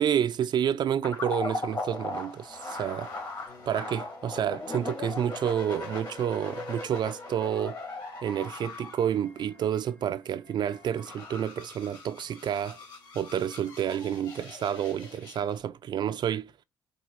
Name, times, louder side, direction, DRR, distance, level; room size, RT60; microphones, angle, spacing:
voice 1, 0.0-3.1 3.7-7.8 8.2-12.8 13.1-16.5, right 9 dB, 60° right, 0.3 m, -29 dB
sound 1, 1.0-15.5, left 2 dB, 50° left, 2.0 m, -39 dB
sound 2, 3.4-14.5, left 3 dB, 75° left, 3.4 m, -59 dB
4.3 x 2.4 x 4.6 m
supercardioid pair, 55°, 9 cm